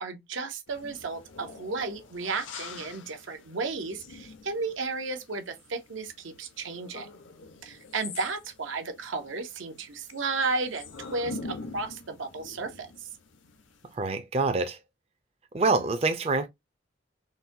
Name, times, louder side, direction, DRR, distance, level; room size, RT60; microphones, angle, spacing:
voice 1, 0.0-7.1 7.6-13.1, right 3 dB, 85° right, 0.7 m, -33 dB
sound 1, 0.7-13.9, left 3 dB, 85° left, 0.7 m, -46 dB
voice 2, 13.9-14.8 15.5-16.5, right 3 dB, 30° right, 0.4 m, -26 dB
3.8 x 2.2 x 2.6 m
head